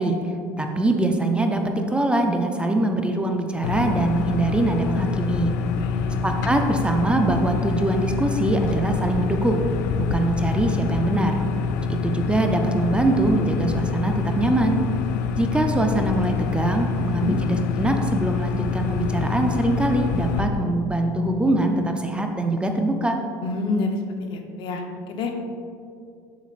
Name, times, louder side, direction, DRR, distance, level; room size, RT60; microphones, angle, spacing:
voice 1, 0.0-5.6 6.2-9.7 10.0-11.4 11.9-14.8 15.4-23.2, right 2 dB, 10° right, 4 dB, 0.5 m, -23 dB
sound 1, 3.6-20.4, left 5 dB, 80° left, 0.4 m, -26 dB
voice 2, 5.8-6.2 17.1-17.4 23.4-24.0 24.3-25.3, left 3 dB, 50° left, 4 dB, 0.8 m, -28 dB
7.1 x 7.1 x 2.5 m, 2.5 s
supercardioid pair, 100°, 10 cm